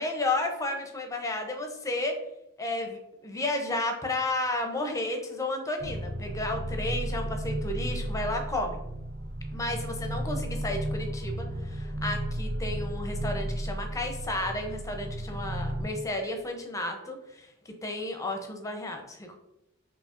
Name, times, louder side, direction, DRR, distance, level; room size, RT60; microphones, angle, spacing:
voice 1, 0.0-2.2 2.6-8.8 9.5-19.4, left 2 dB, 15° left, 4 dB, 0.5 m, -32 dB
sound 1, 5.8-15.9, right 1 dB, 40° right, 0.5 m, -33 dB
5.3 x 2.7 x 2.4 m, 0.89 s
head